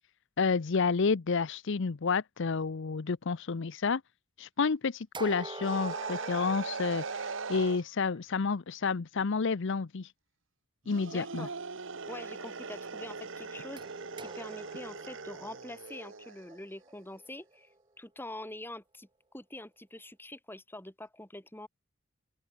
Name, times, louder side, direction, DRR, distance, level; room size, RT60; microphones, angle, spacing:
voice 1, 0.4-4.0 4.4-10.1 10.9-11.5, left 5 dB, 65° left, 0.6 m, -30 dB
sound 1, 5.1-7.8 13.8-17.8, right 3 dB, 25° right, 3.5 m, -46 dB
sound 2, 5.6-7.8 10.8-16.4, right 4 dB, 65° right, 1.4 m, -40 dB
voice 2, 11.0-11.5 12.1-13.8 14.2-17.7 18.0-19.1 19.3-21.7, left 1 dB, 10° left, 3.2 m, -45 dB
open air
head